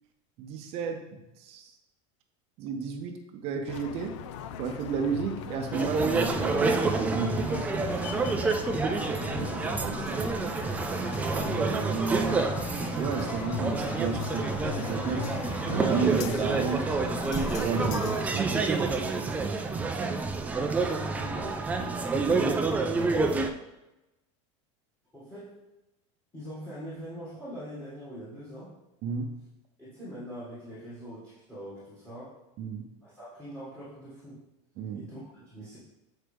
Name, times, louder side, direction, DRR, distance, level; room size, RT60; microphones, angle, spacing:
voice 1, 0.4-1.7 2.6-4.2 4.6-8.6 9.2-10.3 11.4-12.5 12.9-15.4 15.6-17.0 17.6-18.7 19.2-19.6 29.0-29.3 32.6-32.8 34.8-35.1, right 5 dB, 40° right, 6 dB, 0.7 m, -33 dB
sound 1, 3.7-18.2, left 10 dB, 75° left, 0.4 m, -39 dB
sound 2, 5.7-23.5, right 3 dB, 10° right, 0.3 m, -28 dB
voice 2, 20.5-23.1 25.1-25.7 26.3-28.8 29.8-32.4 33.0-34.4 34.9-35.8, equal, 10° left, -10 dB, 1.9 m, -43 dB
7.8 x 4.4 x 3.4 m, 0.97 s
supercardioid pair, 160°, 16 cm